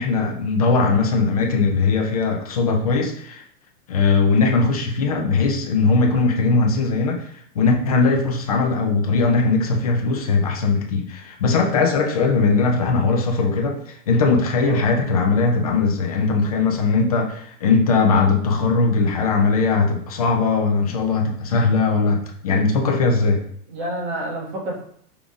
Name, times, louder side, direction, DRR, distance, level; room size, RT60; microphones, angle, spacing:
voice 1, 0.0-3.4 3.9-7.3 7.6-23.4, left 4 dB, 30° left, 2 dB, 0.3 m, -19 dB
voice 2, 14.6-15.0 23.7-24.8, right 1 dB, 50° right, -1 dB, 1.6 m, -29 dB
5.0 x 3.8 x 2.4 m, 0.63 s
supercardioid pair, 160°, 45 cm